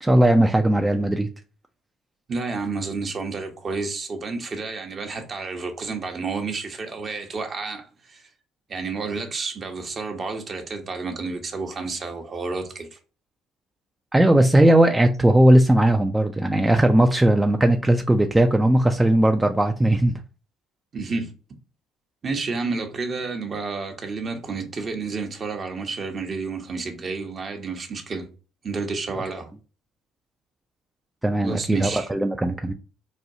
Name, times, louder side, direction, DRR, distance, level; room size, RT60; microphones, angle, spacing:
voice 1, 0.0-1.3 14.1-20.2 31.2-32.7, right 1 dB, 10° right, 0.4 m, -18 dB
voice 2, 2.3-8.3 8.7-13.0 20.9-21.3 22.2-28.3 28.6-29.5 31.4-32.1, right 4 dB, 45° right, 0.8 m, -30 dB
4.2 x 2.3 x 2.7 m
hypercardioid pair, 60°, 0 cm